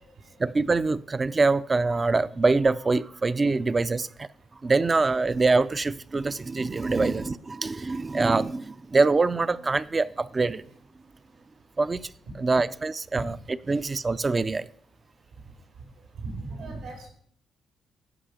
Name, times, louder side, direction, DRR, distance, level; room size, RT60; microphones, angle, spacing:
voice 1, 0.4-4.3 4.6-10.6 11.8-12.1 12.4-13.4 13.7-14.7, right 3 dB, 25° right, 0.4 m, -24 dB
voice 2, 16.2-17.1, right 3 dB, 80° right, 4.7 m, -36 dB
16.0 x 5.5 x 5.1 m
cardioid pair, 90°, 0 cm